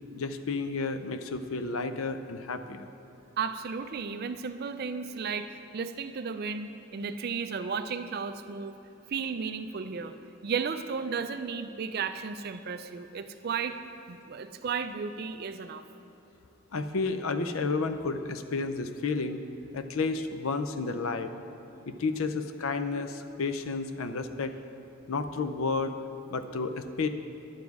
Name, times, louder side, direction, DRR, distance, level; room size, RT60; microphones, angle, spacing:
voice 1, 0.1-2.9 16.7-19.4 19.7-21.3 21.9-24.5 25.1-25.9 26.3-27.1, left 4 dB, 70° left, 9 dB, 0.5 m, -31 dB
voice 2, 3.4-8.8 9.1-10.1 10.4-13.8 14.1-15.9, right 5 dB, 45° right, 10 dB, 0.4 m, -34 dB
10.5 x 7.2 x 4.7 m, 2.9 s
head